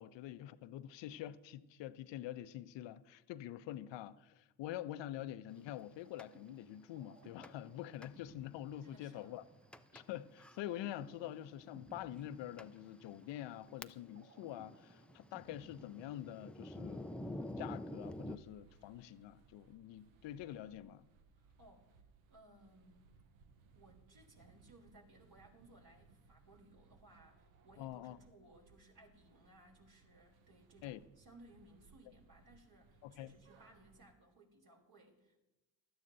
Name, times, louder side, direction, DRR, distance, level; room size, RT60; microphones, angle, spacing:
voice 1, 0.0-9.4 9.9-21.0 27.8-28.2 30.8-31.0 33.0-33.3, left 12 dB, 65° left, 0.7 m, -46 dB
sound 1, 6.0-16.7, right 2 dB, 30° right, 4.5 m, -63 dB
Thunder, 6.2-6.3 7.4-7.7 8.0-8.1 8.8-8.9 9.7-10.0 10.4-10.6 11.5-11.6 12.2-12.3 12.6-12.7 13.3-14.3 14.5-18.4, left 1 dB, 5° left, 0.4 m, -47 dB
voice 2, 8.8-9.4 21.4-22.0 22.3-23.1 23.7-35.4, right 1 dB, 50° right, 3.4 m, -63 dB
sound 2, 18.0-34.1, right 5 dB, 80° right, 0.9 m, -66 dB
16.5 x 12.0 x 2.7 m
hypercardioid pair, 50°, 47 cm